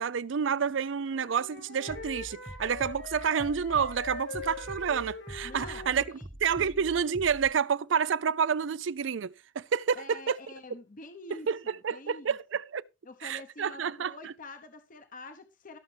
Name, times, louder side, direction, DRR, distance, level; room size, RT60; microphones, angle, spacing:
voice 1, 0.0-6.0 6.4-10.4 11.3-12.8 13.2-14.3, right 6 dB, 90° right, 0.5 m, -29 dB
Wind instrument woodwind instrument, 0.9-6.2, left 3 dB, 70° left, 5.1 m, -43 dB
Bass drum, 1.9-7.5, right 1 dB, 5° right, 0.5 m, -45 dB
voice 2, 5.4-6.2 6.6-6.8 9.9-12.4 13.0-15.8, left 2 dB, 45° left, 1.0 m, -47 dB
17.5 x 6.7 x 3.4 m
head